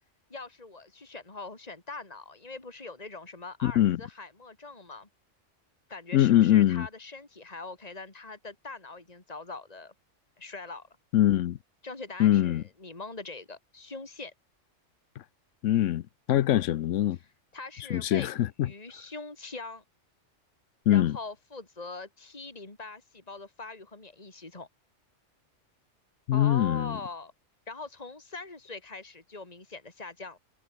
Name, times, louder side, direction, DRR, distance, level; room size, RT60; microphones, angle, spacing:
voice 1, 0.3-5.1 5.9-9.9 10.4-10.9 11.8-14.3 17.5-19.8 20.9-24.7 26.3-27.3 27.7-30.4, left 3 dB, 30° left, 3.0 m, -42 dB
voice 2, 3.6-4.0 6.1-6.9 11.1-11.6 12.2-12.6 15.6-17.2 17.9-18.7 20.9-21.2 26.3-27.0, left 12 dB, 85° left, 1.0 m, -23 dB
omnidirectional pair, 1.3 m